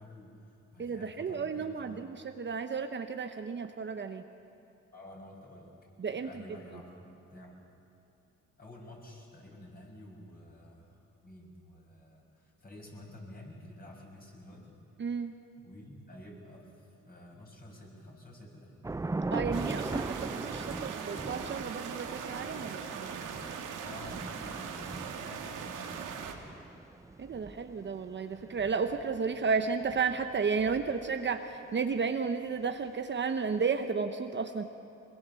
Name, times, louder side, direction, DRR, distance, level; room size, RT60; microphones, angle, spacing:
voice 1, 0.0-2.0 4.9-5.7 6.1-7.6 8.6-14.8 15.6-18.7 19.3-19.8 23.8-26.3, left 1 dB, 30° left, -1 dB, 6.8 m, -50 dB
voice 2, 0.8-4.2 6.0-6.3 15.0-15.3 19.3-23.3 27.2-34.6, right 5 dB, 35° right, 7 dB, 1.0 m, -33 dB
Thunder / Rain, 18.8-31.3, right 3 dB, 10° right, 0.5 m, -40 dB
sound 1, 19.5-26.3, right 7 dB, 85° right, 2.3 m, -40 dB
23.0 x 21.5 x 7.0 m, 2.7 s
cardioid pair, 90°, 30 cm